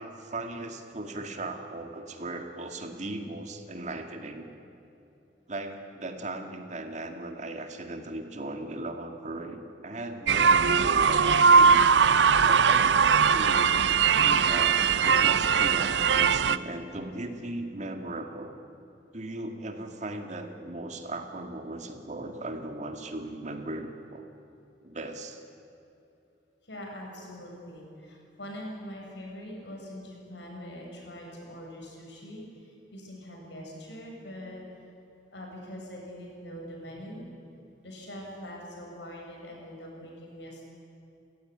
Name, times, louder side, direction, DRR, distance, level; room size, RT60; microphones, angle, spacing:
voice 1, 0.0-4.5 5.5-11.9 12.4-13.6 14.2-18.5 19.1-24.3 24.8-25.4, right 2 dB, 40° right, 5 dB, 2.1 m, -37 dB
sound 1, 10.3-16.6, right 6 dB, 75° right, 0.6 m, -20 dB
voice 2, 26.6-34.6 35.3-37.2 37.8-40.7, equal, 75° left, -1 dB, 7.6 m, -43 dB
30.0 x 15.5 x 10.0 m, 2.8 s
head